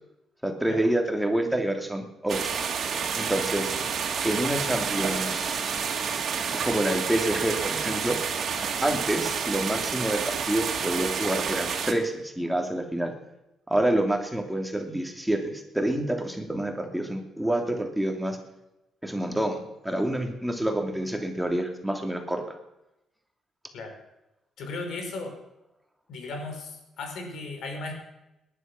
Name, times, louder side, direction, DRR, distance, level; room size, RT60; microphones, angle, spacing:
voice 1, 0.4-2.4 3.2-3.7 4.2-5.8 6.6-8.2 8.8-13.1 13.7-18.4 19.0-22.4, right 1 dB, 5° right, 3 dB, 3.0 m, -27 dB
sound 1, 2.3-11.9, right 6 dB, 60° right, 2.6 m, -29 dB
voice 2, 24.6-25.4 26.1-27.9, left 3 dB, 75° left, 3 dB, 5.0 m, -36 dB
19.0 x 11.0 x 6.1 m, 0.91 s
cardioid pair, 90°, 0 cm